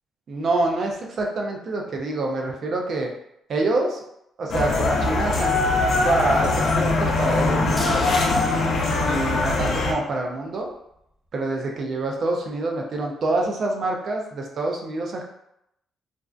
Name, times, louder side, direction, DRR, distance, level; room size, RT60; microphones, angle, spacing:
voice 1, 0.3-3.1 3.5-4.0 4.4-5.6 6.0-8.0 9.1-10.7 11.3-15.2, right 2 dB, 55° right, 1 dB, 0.5 m, -26 dB
sound 1, 4.5-9.9, left 3 dB, 60° left, 0.5 m, -22 dB
sound 2, 7.8-9.9 10.2-10.3 10.7-10.8, left 1 dB, 10° left, 0.7 m, -38 dB
2.5 x 2.1 x 2.4 m, 0.79 s
cardioid pair, 90°, 0 cm